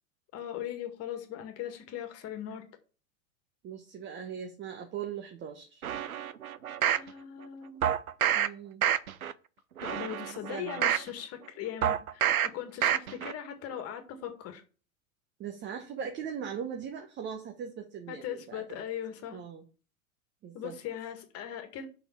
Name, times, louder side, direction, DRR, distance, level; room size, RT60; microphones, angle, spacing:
voice 1, 0.3-2.7 6.9-7.9 9.8-12.2 12.5-14.6 18.1-19.4 20.5-21.9, left 10 dB, 35° left, 1.9 m, -39 dB
voice 2, 3.6-5.9 8.3-8.9 10.5-10.8 15.4-18.7 19.3-19.6 20.4-20.8, right 7 dB, 25° right, 1.2 m, -39 dB
sound 1, 5.8-7.1 7.8-8.5 8.8-9.3 9.8-11.1 11.8-12.5 12.8-13.3 13.7-13.8, right 10 dB, 80° right, 0.7 m, -28 dB
5.9 x 5.8 x 7.2 m
figure-of-eight pair, 90°, 42 cm